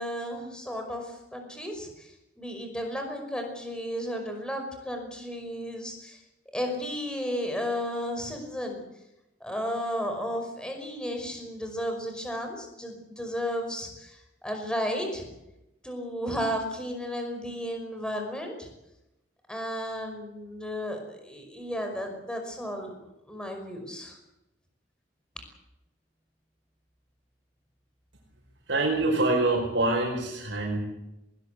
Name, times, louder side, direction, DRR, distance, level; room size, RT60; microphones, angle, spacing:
voice 1, 0.0-6.2 6.5-8.8 9.4-15.3 15.8-18.7 19.5-22.9 23.3-24.2, equal, 5° left, 4 dB, 5.4 m, -33 dB
voice 2, 28.7-30.8, right 2 dB, 80° right, 0 dB, 5.3 m, -25 dB
21.0 x 20.0 x 8.4 m, 0.90 s
head